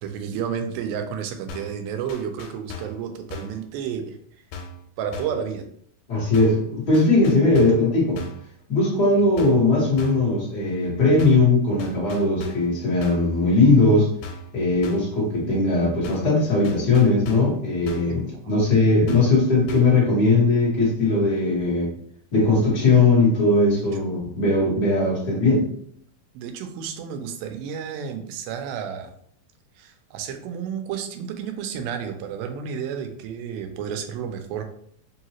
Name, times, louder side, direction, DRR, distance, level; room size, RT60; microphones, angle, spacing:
voice 1, 0.0-4.2 5.0-5.7 18.1-18.2 18.4-18.5 24.0-24.1 26.3-29.1 29.8-34.7, right 7 dB, 85° right, 6 dB, 2.4 m, -31 dB
sound 1, 1.5-1.8 2.1-3.0 3.3-3.6 4.5-4.8 5.1-5.4 6.3-6.7 6.9-7.9 8.1-8.5 9.4-9.7 10.0-10.3 11.2-11.5 11.8-12.7 13.0-13.3 14.2-14.5 14.8-15.2 16.0-16.4 16.6-17.6 17.9-18.2 19.1-19.4 19.7-20.0, left 3 dB, 85° left, 2.4 m, -38 dB
voice 2, 6.1-8.2 8.7-14.1 14.5-21.9 22.3-25.7, left 2 dB, 40° left, -7 dB, 1.5 m, -19 dB
5.3 x 2.8 x 2.9 m, 0.65 s
omnidirectional pair, 4.2 m